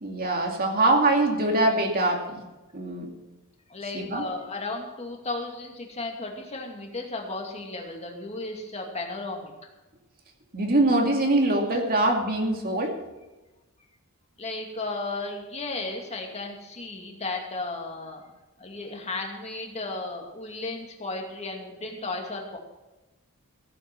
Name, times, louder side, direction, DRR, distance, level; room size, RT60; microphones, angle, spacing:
voice 1, 0.0-2.4 2.7-3.1 3.9-4.2 10.5-12.9, right 2 dB, 45° right, 1 dB, 2.3 m, -23 dB
voice 2, 3.7-9.5 14.4-18.2 18.6-22.6, left 2 dB, 30° left, 1 dB, 2.5 m, -34 dB
15.5 x 9.1 x 6.2 m, 1.1 s
head